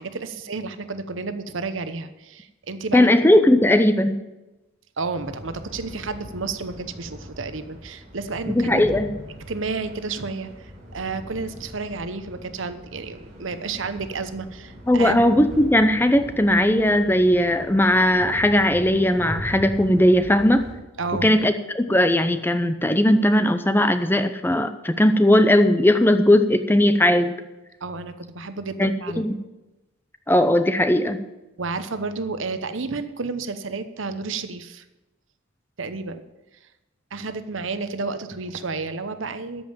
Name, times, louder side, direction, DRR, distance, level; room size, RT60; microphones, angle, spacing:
voice 1, 0.0-3.0 5.0-8.8 9.5-15.2 21.0-21.3 27.8-29.3 31.6-34.8 35.8-36.2 37.1-39.6, right 4 dB, 75° right, 11 dB, 0.9 m, -31 dB
voice 2, 2.9-4.2 8.5-9.1 14.9-20.7 21.2-27.3 28.8-28.9 29.2-29.3 30.3-31.2, left 1 dB, 10° left, 10 dB, 0.6 m, -18 dB
sound 1, 5.1-20.7, equal, 35° right, 3.5 m, -40 dB
13.0 x 5.5 x 8.8 m, 1.0 s
head